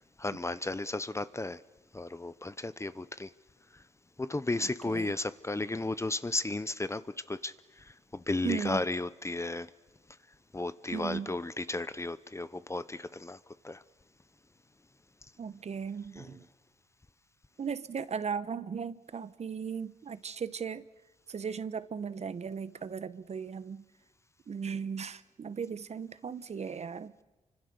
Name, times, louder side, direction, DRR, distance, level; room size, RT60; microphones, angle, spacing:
voice 1, 0.2-1.6 1.9-3.3 4.2-7.0 7.3-7.5 8.1-9.7 10.5-13.4 13.6-13.8 16.1-16.4, left 2 dB, 20° left, 1.0 m, -34 dB
voice 2, 8.4-8.8 10.9-11.3 15.4-16.4 17.6-20.8 21.3-23.8 24.5-27.1, right 6 dB, 50° right, 1.1 m, -37 dB
28.5 x 25.0 x 6.9 m
supercardioid pair, 55°, 14 cm